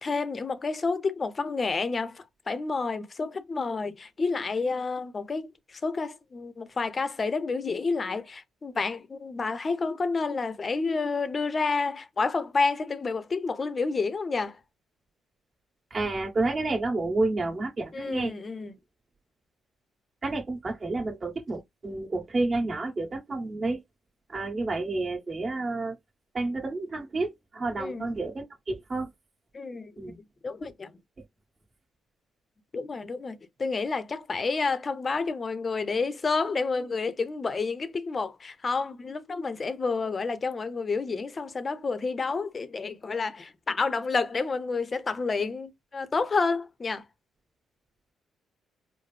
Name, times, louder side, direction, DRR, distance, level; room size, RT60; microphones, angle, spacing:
voice 1, 0.0-5.5 5.8-14.6 17.9-18.7 27.8-28.1 29.5-29.9 30.4-30.9 32.7-47.0, left 4 dB, 35° left, 0.6 m, -29 dB
voice 2, 15.9-18.3 20.2-23.8 24.3-25.9 26.3-29.1 30.0-30.2, right 2 dB, 35° right, 1.6 m, -30 dB
4.7 x 2.0 x 3.2 m
cardioid pair, 90°, 0 cm